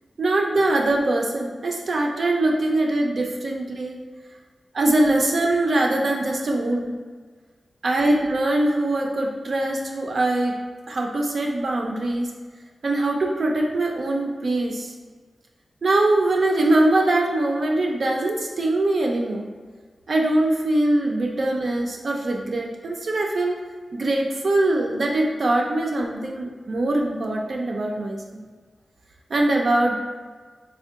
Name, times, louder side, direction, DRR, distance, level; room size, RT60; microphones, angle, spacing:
voice 1, 0.2-4.0 4.7-6.9 7.8-10.6 10.9-12.3 12.8-14.9 15.8-19.5 20.1-23.6 23.9-28.2 29.3-29.9, right 2 dB, 55° right, 0 dB, 0.3 m, -22 dB
3.5 x 2.1 x 3.5 m, 1.5 s
wide cardioid pair, 105°, 0 cm